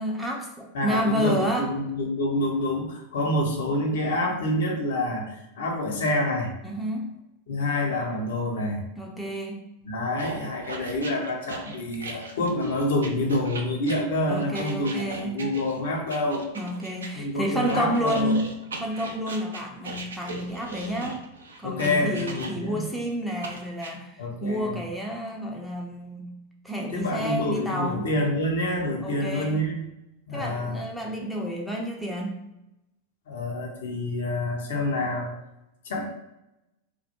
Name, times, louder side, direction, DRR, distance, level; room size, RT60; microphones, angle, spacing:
voice 1, 0.0-1.7 6.6-7.2 9.0-9.6 14.3-15.4 16.6-18.5 18.8-21.2 21.6-26.3 26.6-28.1 29.0-29.6 30.3-32.4, equal, ahead, -1 dB, 0.4 m, -30 dB
voice 2, 0.7-6.5 7.5-8.8 9.9-14.9 15.2-16.5 17.1-18.3 21.6-22.9 24.2-24.8 26.9-29.8 30.3-30.8 33.3-35.3 35.8-36.0, left 1 dB, 60° left, 0 dB, 0.5 m, -27 dB
sound 1, 10.2-17.1 17.7-22.8 23.4-23.9, right 3 dB, 70° right, 0.4 m, -38 dB
2.2 x 2.0 x 2.8 m, 0.91 s
figure-of-eight pair, 90°, 0 cm